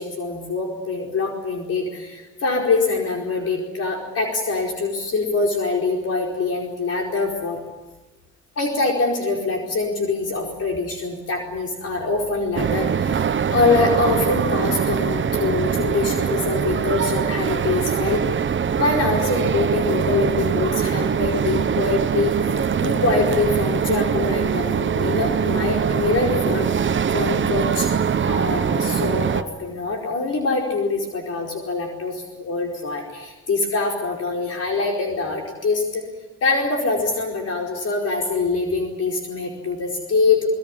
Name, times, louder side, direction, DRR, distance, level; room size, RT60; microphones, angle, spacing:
voice 1, 0.0-7.6 8.6-22.3 22.8-26.7 27.1-27.9 28.3-36.0 36.4-40.5, left 3 dB, 55° left, 0 dB, 4.8 m, -24 dB
sound 1, 12.6-29.4, right 7 dB, 40° right, 1.1 m, -22 dB
22.0 x 21.5 x 10.0 m, 1.1 s
cardioid pair, 90°, 30 cm